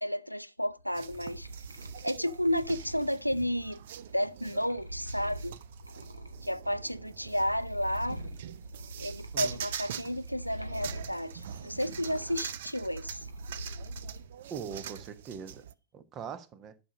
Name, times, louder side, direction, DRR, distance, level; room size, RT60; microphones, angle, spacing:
voice 1, 0.0-1.5 2.0-3.8 4.1-5.6 6.4-8.2 9.0-13.3, equal, 90° left, 0.4 m, -32 dB
sound 1, 0.7-6.9 7.2-14.3 14.7-15.3, right 1 dB, 85° right, 1.0 m, -44 dB
sound 2, 0.9-15.7, right 10 dB, 60° right, 0.5 m, -44 dB
voice 2, 14.5-15.6 15.9-16.7, right 7 dB, 30° right, 1.2 m, -41 dB
11.5 x 6.2 x 5.1 m
figure-of-eight pair, 90°, 0 cm